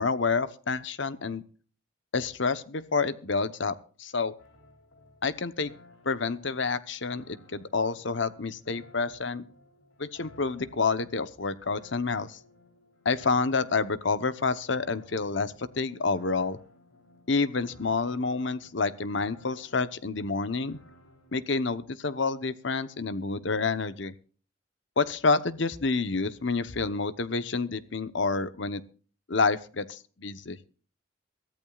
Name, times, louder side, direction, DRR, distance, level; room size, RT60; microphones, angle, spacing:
voice 1, 0.0-1.4 2.1-4.3 5.2-5.7 6.0-9.4 10.0-12.4 13.0-16.6 17.3-20.8 21.3-24.1 25.0-28.8 29.3-30.6, left 4 dB, 60° left, 13 dB, 0.9 m, -28 dB
sound 1, 4.4-21.5, left 1 dB, 85° left, 3.5 m, -57 dB
23.0 x 14.0 x 2.4 m, 0.40 s
head